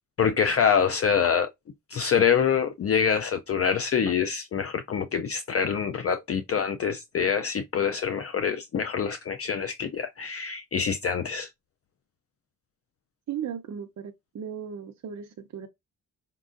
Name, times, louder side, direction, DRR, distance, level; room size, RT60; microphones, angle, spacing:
voice 1, 0.2-1.5 1.9-11.5, left 7 dB, 45° left, 0.4 m, -25 dB
voice 2, 13.3-15.7, right 8 dB, 55° right, 0.6 m, -36 dB
5.2 x 3.7 x 2.5 m
wide cardioid pair, 140°, 33 cm